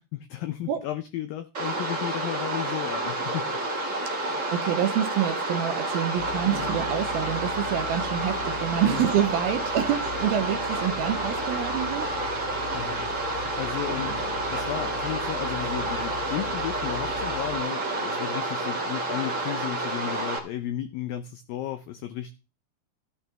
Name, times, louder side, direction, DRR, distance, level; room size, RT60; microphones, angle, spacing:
voice 1, 0.0-3.5 8.8-9.1 12.7-22.3, left 12 dB, 85° left, 2.0 m, -34 dB
sound 1, 1.5-20.4, right 2 dB, 50° right, 0.9 m, -29 dB
voice 2, 4.2-12.1, right 10 dB, 75° right, 2.4 m, -27 dB
sound 2, 6.1-17.6, left 7 dB, 50° left, 4.1 m, -40 dB
14.0 x 10.0 x 3.4 m
omnidirectional pair, 5.0 m